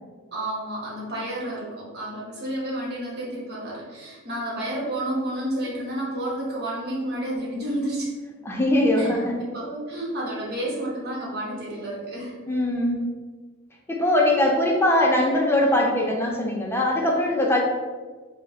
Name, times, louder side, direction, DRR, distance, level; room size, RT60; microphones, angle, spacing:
voice 1, 0.3-8.1 9.0-12.3, right 1 dB, 50° right, -5 dB, 1.0 m, -30 dB
voice 2, 8.4-9.3 12.5-13.0 13.9-17.6, left 1 dB, 10° left, -1 dB, 0.5 m, -21 dB
3.9 x 2.2 x 3.4 m, 1.4 s
head